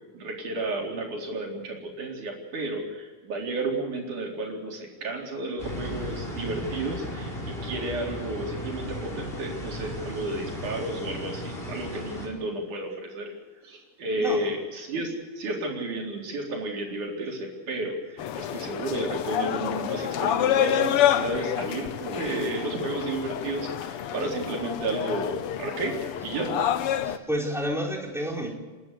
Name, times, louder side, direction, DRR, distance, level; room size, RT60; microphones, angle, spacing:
voice 1, 0.1-13.3 13.6-26.6, right 2 dB, 65° right, 0 dB, 5.5 m, -32 dB
sound 1, 5.6-12.3, equal, 15° left, 4.6 m, -36 dB
voice 2, 14.2-14.5 27.0-28.5, equal, ahead, -1 dB, 3.7 m, -30 dB
sound 2, 18.2-27.2, left 10 dB, 80° left, 1.2 m, -28 dB
29.5 x 12.5 x 8.2 m, 1.3 s
omnidirectional pair, 3.9 m